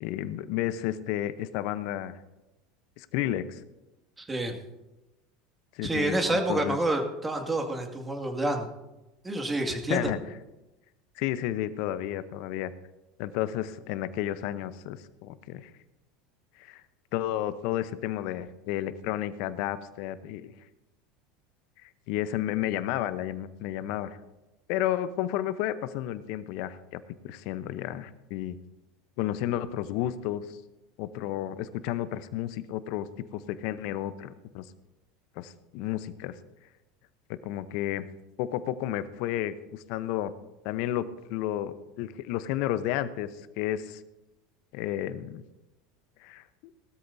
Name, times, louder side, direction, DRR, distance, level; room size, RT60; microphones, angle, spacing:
voice 1, 0.0-2.2 3.0-3.6 5.7-6.8 9.7-10.2 11.2-12.7 13.2-15.7 16.6-16.8 17.1-20.5 21.8-24.2 24.7-28.6 29.2-30.6 31.0-34.7 35.4-36.4 37.3-38.0 38.4-40.3 40.6-44.0 44.7-45.4 46.2-46.4, left 12 dB, 60° left, 14 dB, 0.8 m, -32 dB
voice 2, 4.2-4.6 5.8-8.7 9.2-10.1, right 1 dB, 15° right, 4 dB, 2.2 m, -28 dB
18.5 x 13.0 x 2.7 m, 1.0 s
hypercardioid pair, 85°, 0 cm